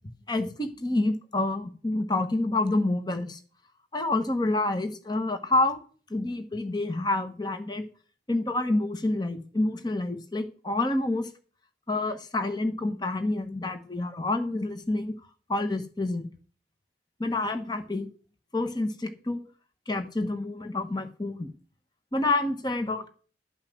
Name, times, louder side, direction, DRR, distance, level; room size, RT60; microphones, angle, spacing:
voice 1, 0.3-3.4 3.9-5.8 6.1-7.9 8.3-11.3 11.9-15.1 15.5-16.3 17.2-18.1 18.5-19.4 19.9-21.5 22.1-23.1, left 2 dB, 25° left, 8 dB, 1.1 m, -28 dB
12.0 x 5.7 x 7.8 m, 0.40 s
head